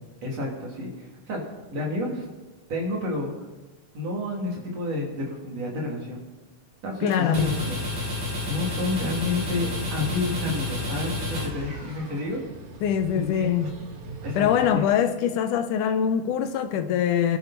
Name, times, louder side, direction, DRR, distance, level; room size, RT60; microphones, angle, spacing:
voice 1, 0.2-1.5 1.7-2.3 2.7-3.5 3.9-6.3 6.8-7.8 8.5-12.4 13.1-13.5 14.2-14.8, left 2 dB, 55° right, 4.4 m, -30 dB
voice 2, 7.0-7.5 12.8-13.7 14.4-17.4, left 8 dB, 85° left, 2.4 m, -23 dB
sound 1, 7.1-12.2, left 2 dB, 35° right, 2.3 m, -31 dB
sound 2, 9.4-14.8, right 3 dB, 75° right, 3.0 m, -43 dB
23.5 x 11.5 x 4.4 m
omnidirectional pair, 3.5 m